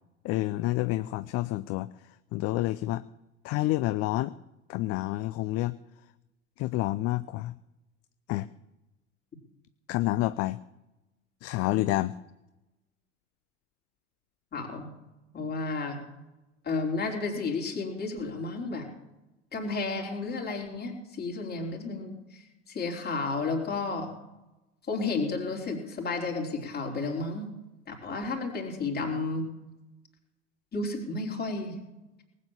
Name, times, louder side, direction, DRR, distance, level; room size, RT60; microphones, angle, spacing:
voice 1, 0.2-1.9 2.3-3.0 3.4-4.3 4.7-5.8 6.6-7.5 8.3-8.5 9.9-10.6 11.4-12.1, left 17 dB, 40° left, 14 dB, 0.5 m, -28 dB
voice 2, 14.5-14.9 15.3-16.0 16.6-18.9 19.5-24.1 24.9-27.5 27.9-29.5 30.7-31.8, left 3 dB, 25° left, 0 dB, 4.0 m, -32 dB
19.0 x 8.4 x 7.3 m, 0.96 s
figure-of-eight pair, 70°, 36 cm